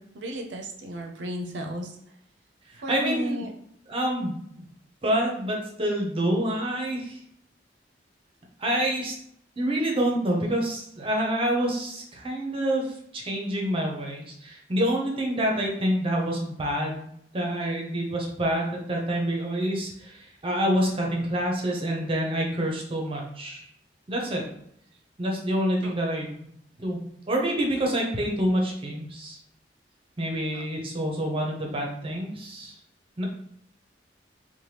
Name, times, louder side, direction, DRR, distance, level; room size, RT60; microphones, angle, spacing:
voice 1, 0.1-1.9 2.8-3.5 24.2-24.5 25.8-25.9 30.5-30.6, right 1 dB, 85° right, 2 dB, 0.5 m, -34 dB
voice 2, 2.7-3.4 3.9-4.7 5.0-7.2 8.6-9.1 9.6-17.1 17.3-23.6 24.1-24.4 25.2-26.5 26.8-27.0 27.3-29.4 30.2-32.8 33.2-33.3, right 1 dB, 30° right, -1 dB, 0.6 m, -27 dB
2.9 x 2.2 x 3.2 m, 0.71 s
head